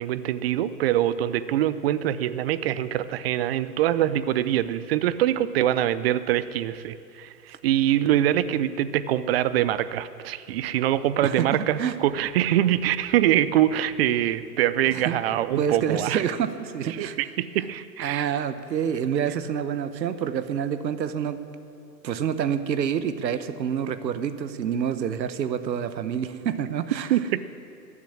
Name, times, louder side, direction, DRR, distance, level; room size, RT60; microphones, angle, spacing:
voice 1, 0.0-16.2 16.9-18.3 27.1-27.5, right 12 dB, 40° right, 15 dB, 0.5 m, -24 dB
voice 2, 11.2-12.0 14.9-15.2 15.6-17.2 18.0-21.4 22.0-27.2, right 8 dB, 85° right, 12 dB, 1.1 m, -27 dB
14.5 x 7.3 x 9.8 m, 2.5 s
hypercardioid pair, 130°, 50 cm